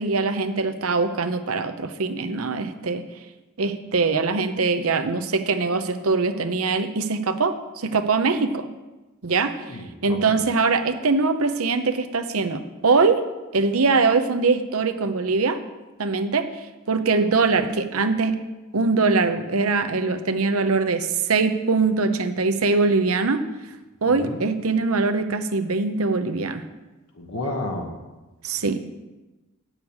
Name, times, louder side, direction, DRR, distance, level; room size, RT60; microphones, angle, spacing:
voice 1, 0.0-3.0 3.6-8.7 9.2-9.6 10.0-13.2 13.5-15.6 16.0-16.5 16.9-18.3 18.7-23.4 24.0-26.6 28.4-28.8, right 4 dB, 90° right, 8 dB, 0.8 m, -22 dB
voice 2, 9.7-10.4 24.1-24.4 27.2-28.0, left 2 dB, 85° left, 1 dB, 1.4 m, -32 dB
8.6 x 6.6 x 8.1 m, 1.1 s
head